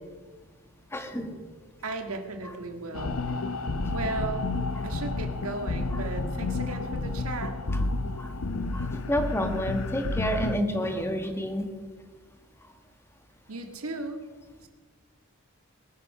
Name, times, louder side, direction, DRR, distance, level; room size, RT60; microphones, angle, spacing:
voice 1, 0.9-1.3 3.8-3.9 8.1-8.3 8.7-11.7, equal, 10° left, 4 dB, 1.4 m, -29 dB
voice 2, 1.8-3.2 3.9-4.5 4.8-7.5 13.5-14.2 14.6-14.7, right 3 dB, 80° right, 5 dB, 1.7 m, -35 dB
sound 1, 2.9-10.6, left 3 dB, 80° left, 0.8 m, -30 dB
21.0 x 9.9 x 5.5 m, 1.5 s
head